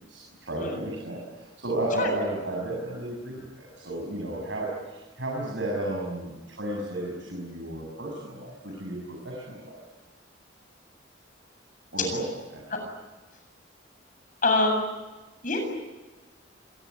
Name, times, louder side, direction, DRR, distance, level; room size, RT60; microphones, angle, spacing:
voice 1, 0.1-9.8 11.9-12.6, right 1 dB, 65° right, -2 dB, 7.1 m, -33 dB
voice 2, 14.4-14.8 15.4-15.6, left 3 dB, 45° left, 4 dB, 7.8 m, -24 dB
27.0 x 22.0 x 9.7 m, 1.2 s
head